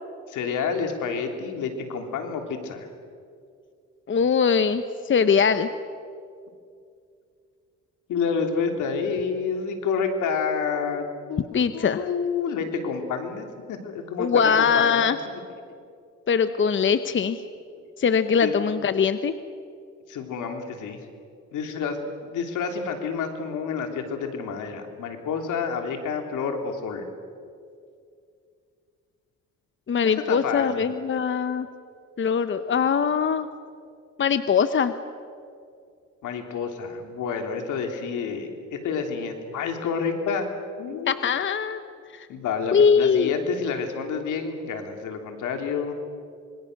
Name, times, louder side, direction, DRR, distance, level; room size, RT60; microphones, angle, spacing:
voice 1, 0.3-2.9 8.1-15.0 18.3-18.5 20.1-21.0 21.5-22.0 22.3-27.1 30.0-30.9 36.2-40.5 40.8-41.2 42.3-45.9, left 5 dB, 80° left, 4 dB, 3.2 m, -29 dB
voice 2, 4.1-5.7 11.5-12.0 14.2-15.2 16.3-17.4 18.0-19.3 29.9-31.7 32.2-33.5 34.2-34.9 41.1-41.8 42.1-42.3 42.7-43.3, left 6 dB, 40° left, 11 dB, 1.0 m, -21 dB
26.0 x 24.5 x 6.6 m, 2.4 s
cardioid pair, 90°, 30 cm